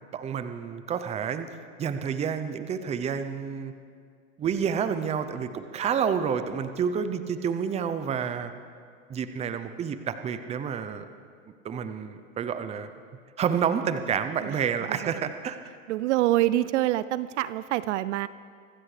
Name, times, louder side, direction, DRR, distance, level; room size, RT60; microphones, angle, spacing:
voice 1, 0.1-1.5 1.8-3.7 4.4-8.5 9.1-11.0 11.6-12.9 13.4-15.6, right 7 dB, 15° right, 10 dB, 0.6 m, -29 dB
voice 2, 15.9-18.3, right 15 dB, 60° right, 16 dB, 0.5 m, -26 dB
25.0 x 15.5 x 3.3 m, 2.2 s
hypercardioid pair, 125°, 41 cm